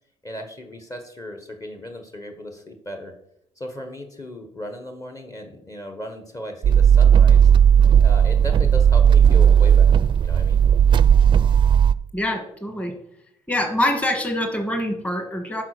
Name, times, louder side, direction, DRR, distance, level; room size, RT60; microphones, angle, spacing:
voice 1, 0.2-3.1 3.6-7.5 8.0-9.9 10.2-10.6, equal, 30° left, 5 dB, 1.3 m, -36 dB
sound 1, 6.6-11.9, right 8 dB, 40° right, 0.4 m, -14 dB
voice 2, 12.1-12.9 13.5-15.6, left 1 dB, 10° left, 5 dB, 1.5 m, -25 dB
10.5 x 5.0 x 6.6 m, 0.75 s
cardioid pair, 125°, 12 cm